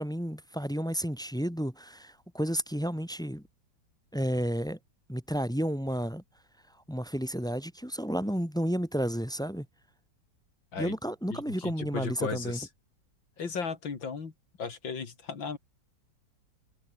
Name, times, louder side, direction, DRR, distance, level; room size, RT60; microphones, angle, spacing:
voice 1, 0.0-3.4 4.1-4.8 5.1-6.2 6.9-9.7 10.8-12.6, equal, ahead, 3.5 m, -31 dB
voice 2, 11.3-12.7 13.4-14.3 14.6-15.6, left 5 dB, 85° left, 3.5 m, -35 dB
omnidirectional pair, 2.0 m